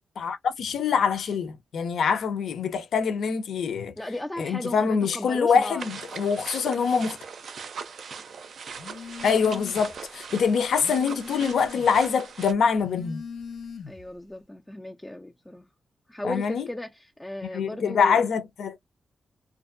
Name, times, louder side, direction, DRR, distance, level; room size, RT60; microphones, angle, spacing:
voice 1, 0.2-3.9 4.4-7.2 9.2-13.2 16.2-16.6 17.5-18.8, left 6 dB, 70° left, 0.6 m, -24 dB
voice 2, 4.0-5.9 13.9-15.7 16.1-18.2, left 1 dB, 10° left, 0.3 m, -36 dB
sound 1, 5.8-12.5, right 5 dB, 60° right, 0.5 m, -40 dB
Telephone, 8.7-10.0 10.4-12.0 12.7-14.2, left 5 dB, 90° left, 0.9 m, -40 dB
2.6 x 2.5 x 2.5 m
wide cardioid pair, 165°, 0 cm